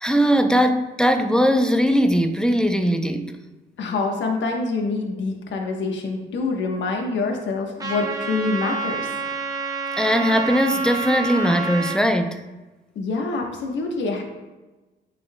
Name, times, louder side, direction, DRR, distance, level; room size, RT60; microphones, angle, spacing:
voice 1, 0.0-3.4 10.0-12.4, equal, 5° left, 0.5 m, -20 dB
voice 2, 3.8-9.1 12.9-14.2, left 3 dB, 70° left, 1.2 m, -26 dB
Trumpet, 7.8-12.0, right 4 dB, 20° right, 1.0 m, -28 dB
9.4 x 5.4 x 2.2 m
cardioid pair, 90°, 20 cm